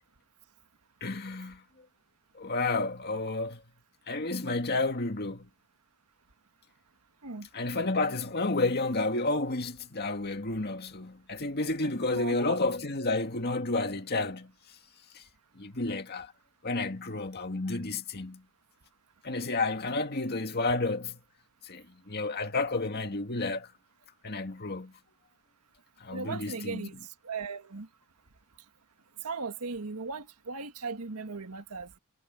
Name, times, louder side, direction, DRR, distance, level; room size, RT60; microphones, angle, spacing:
voice 1, 1.0-1.6 2.4-3.6 4.1-5.5 7.5-14.5 15.1-15.2 15.6-16.3 16.6-18.4 19.2-21.2 21.6-23.7 24.2-24.9 26.0-26.9, left 2 dB, 45° left, 2.0 m, -31 dB
voice 2, 12.1-12.6 26.1-26.9 27.2-27.9 29.2-32.0, right 4 dB, 85° right, 1.6 m, -37 dB
head